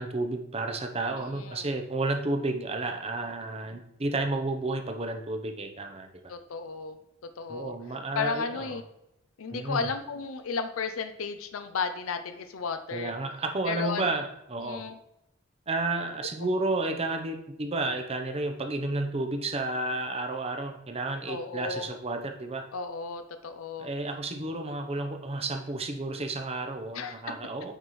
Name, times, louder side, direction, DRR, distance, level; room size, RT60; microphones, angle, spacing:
voice 1, 0.0-6.1 7.5-8.8 9.5-9.9 12.9-14.8 15.7-22.7 23.8-27.7, right 2 dB, 30° right, 5 dB, 0.8 m, -31 dB
voice 2, 1.1-1.7 6.3-7.0 7.2-7.7 8.1-8.8 9.4-13.1 13.7-14.1 14.6-15.0 21.3-21.9 22.7-23.9 26.9-27.3, left 5 dB, 75° left, 9 dB, 0.5 m, -34 dB
9.0 x 4.3 x 3.2 m, 0.85 s
head